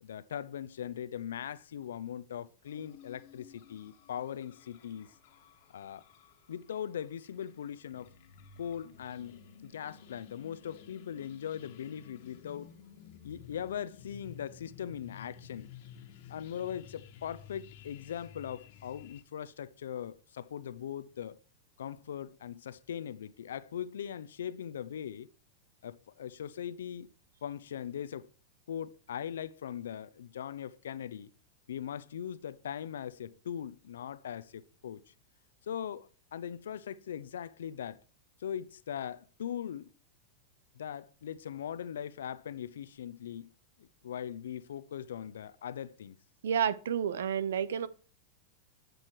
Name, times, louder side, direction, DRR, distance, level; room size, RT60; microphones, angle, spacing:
voice 1, 0.0-5.1 5.7-6.0 6.5-8.1 8.6-12.7 13.2-15.7 16.3-21.4 21.8-25.3 25.8-27.1 27.4-28.3 28.7-31.3 31.7-35.1 35.6-38.0 38.4-39.9 40.7-43.5 43.8-46.2, left 9 dB, 85° left, 0.7 m, -40 dB
sound 1, 2.6-19.2, left 8 dB, 60° left, 1.6 m, -54 dB
voice 2, 46.4-47.9, right 8 dB, 85° right, 0.7 m, -30 dB
10.5 x 6.4 x 4.7 m
hypercardioid pair, 125°, 0 cm